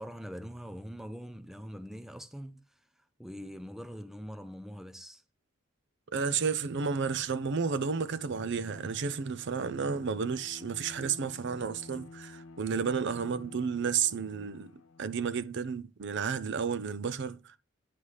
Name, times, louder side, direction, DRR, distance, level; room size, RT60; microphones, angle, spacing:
voice 1, 0.0-2.9 3.2-5.2, equal, ahead, 0.3 m, -43 dB
voice 2, 6.1-14.7 15.0-17.6, right 6 dB, 55° right, 0.5 m, -32 dB
Bowed string instrument, 6.9-15.4, left 3 dB, 70° left, 0.6 m, -52 dB
9.5 x 3.3 x 5.4 m
head